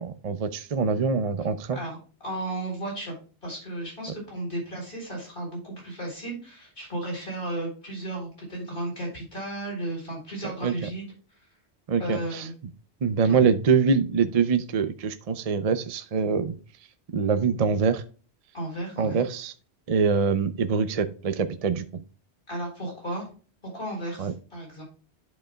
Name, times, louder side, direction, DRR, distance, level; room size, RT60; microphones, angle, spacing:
voice 1, 0.0-1.8 10.4-10.9 11.9-12.5 13.0-16.6 17.1-18.0 19.0-19.5 19.9-22.0 24.2-24.3, right 5 dB, 40° right, 11 dB, 0.6 m, -24 dB
voice 2, 2.2-3.1 3.4-11.1 12.0-12.5 13.2-13.4 18.5-19.2 22.5-23.3 23.7-24.8, right 1 dB, 50° left, -2 dB, 4.3 m, -34 dB
11.5 x 5.3 x 2.3 m, 0.38 s
omnidirectional pair, 1.1 m